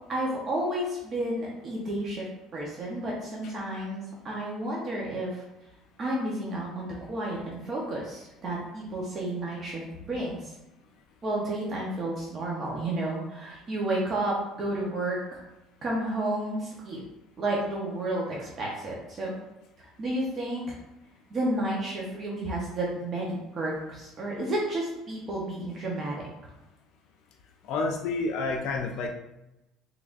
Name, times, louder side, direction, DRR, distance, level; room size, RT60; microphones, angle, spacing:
voice 1, 0.1-5.4 6.0-10.5 11.2-15.4 15.8-17.0 17.4-19.3 19.8-20.8 21.3-26.2, right 1 dB, 35° right, -3 dB, 0.8 m, -31 dB
voice 2, 27.7-29.1, left 3 dB, 65° left, 2 dB, 0.4 m, -29 dB
3.7 x 3.2 x 2.5 m, 0.94 s
cardioid pair, 125°, 0 cm